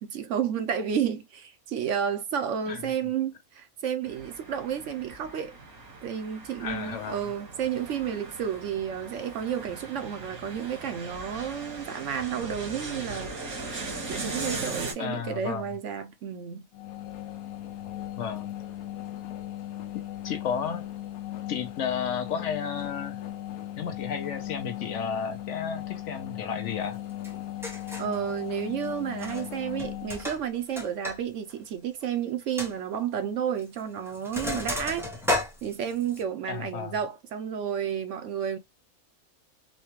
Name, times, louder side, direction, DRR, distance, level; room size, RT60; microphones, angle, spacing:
voice 1, 0.0-5.5 6.0-13.5 14.1-16.6 28.0-35.1 35.6-38.6, right 8 dB, 65° right, 0.9 m, -31 dB
sound 1, 4.0-14.9, right 3 dB, 85° right, 1.8 m, -39 dB
voice 2, 6.6-7.3 15.0-15.6 18.2-18.5 19.9-20.9 21.5-23.2 23.8-27.0 36.5-37.0, left 7 dB, 65° left, 0.9 m, -33 dB
sound 2, 16.7-30.3, left 12 dB, 90° left, 1.1 m, -37 dB
Sink (filling or washing), 27.2-27.3 27.6-28.2 29.1-29.5 29.8-31.2 31.5-31.6 32.0-32.1 32.6-32.7 33.6-33.8 34.1-36.2, left 1 dB, 5° right, 0.4 m, -32 dB
4.1 x 2.2 x 2.9 m
omnidirectional pair, 1.5 m